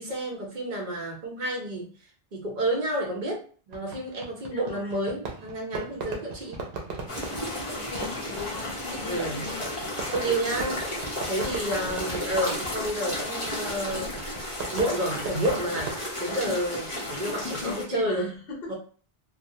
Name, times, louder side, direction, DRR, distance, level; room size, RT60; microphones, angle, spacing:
voice 1, 0.0-1.9 2.3-6.6 9.0-9.5 10.1-18.3 18.7-18.8, right 1 dB, 50° right, 0 dB, 0.9 m, -30 dB
Fireworks, 3.7-16.0, right 4 dB, 80° right, 0.9 m, -39 dB
voice 2, 4.5-5.1 7.6-9.9 11.5-11.9 17.6-18.7, left 5 dB, 65° left, -2 dB, 1.0 m, -39 dB
sound 1, 7.1-17.8, left 1 dB, 35° left, 0.9 m, -33 dB
2.6 x 2.1 x 2.7 m, 0.42 s
omnidirectional pair, 1.0 m